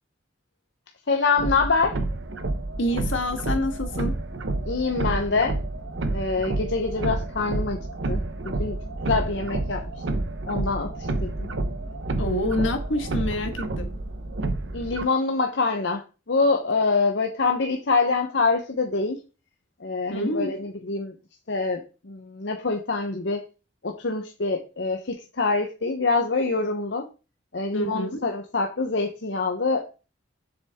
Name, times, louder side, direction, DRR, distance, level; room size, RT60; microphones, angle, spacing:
voice 1, 1.1-2.0 4.6-5.6 6.1-7.8 8.1-8.8 9.1-9.8 10.5-10.9 11.2-11.5 14.7-16.0 16.3-19.2 19.8-21.1 21.5-23.4 23.8-27.1 27.5-29.8, left 4 dB, 65° left, 0.9 m, -25 dB
sound 1, 1.4-15.0, right 2 dB, 70° right, 0.9 m, -29 dB
voice 2, 2.8-4.2 12.2-13.9 20.1-20.5 27.7-28.2, left 1 dB, 80° left, 1.5 m, -27 dB
7.3 x 6.4 x 3.6 m
head